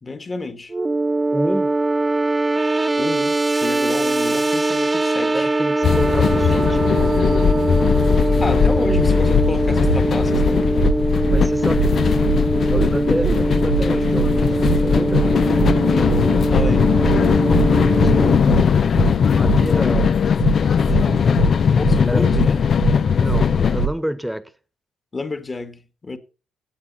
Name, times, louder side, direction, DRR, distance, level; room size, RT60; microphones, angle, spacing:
voice 1, 0.0-0.7 3.0-5.5 8.4-10.7 15.8-16.9 21.8-22.6 25.1-26.2, left 3 dB, 30° left, 1.8 m, -29 dB
sound 1, 0.7-18.4, right 2 dB, 20° right, 1.2 m, -21 dB
voice 2, 1.3-1.7 5.3-6.9 11.2-12.0 12.7-15.3 17.9-20.1 20.8-21.4 22.1-22.3 23.2-24.5, equal, ahead, 1.4 m, -29 dB
sound 2, 5.8-23.9, left 7 dB, 50° left, 0.7 m, -18 dB
sound 3, 8.9-9.0 9.4-9.5 9.8-10.0 10.3-10.5 10.8-11.0 11.3-11.4 11.8-11.9 12.2-12.4 12.7-12.9 13.2-13.4 13.7-13.8 14.2-14.3 14.6-14.8 15.1-15.3 15.6-15.8 16.1-16.2 16.6-16.7 17.0-17.2 17.5-17.7 18.0-18.2 18.5-18.6 19.0-19.1 19.4-19.6 19.9-20.1 20.4-20.6 20.9-21.0 21.4-21.5 21.8-22.0 22.3-22.5 22.8-23.0 23.3-23.4 23.8-23.9, right 10 dB, 70° right, 0.6 m, -22 dB
16.0 x 8.3 x 4.2 m
hypercardioid pair, 50°, 0 cm